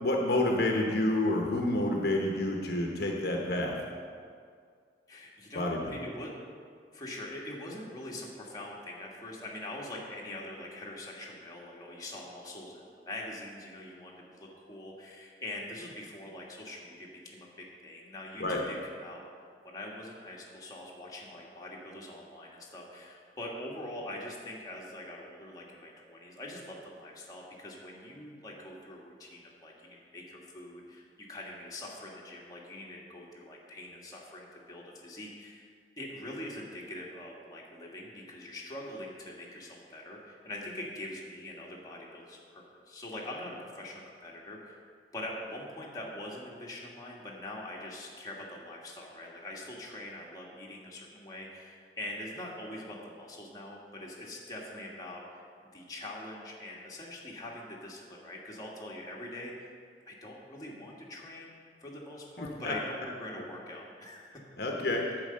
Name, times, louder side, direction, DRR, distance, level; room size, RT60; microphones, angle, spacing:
voice 1, 0.0-3.7 5.5-6.0 18.4-18.6 62.4-62.7 64.6-65.0, left 1 dB, 60° left, 0 dB, 1.0 m, -29 dB
voice 2, 5.1-6.3 6.9-17.5 17.8-19.2 19.6-35.7 36.0-44.8 45.1-59.7 60.1-61.5 61.8-64.4, left 1 dB, 20° left, -3 dB, 1.6 m, -43 dB
11.0 x 4.9 x 7.6 m, 2.1 s
head